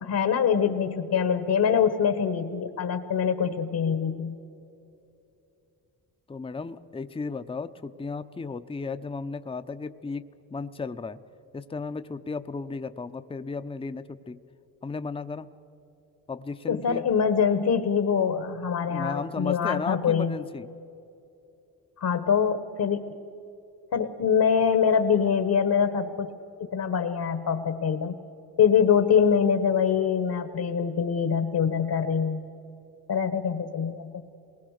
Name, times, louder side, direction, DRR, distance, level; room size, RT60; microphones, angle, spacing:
voice 1, 0.0-4.4 16.7-20.3 22.0-23.1 23.9-26.3 26.7-28.2 28.6-32.4 33.1-34.1, left 7 dB, 60° left, 8 dB, 1.3 m, -24 dB
voice 2, 6.3-11.2 11.5-14.4 14.8-15.5 16.3-17.0 18.9-20.7, left 4 dB, 15° left, 10 dB, 0.7 m, -34 dB
28.0 x 20.5 x 6.6 m, 2.8 s
cardioid pair, 90°, 39 cm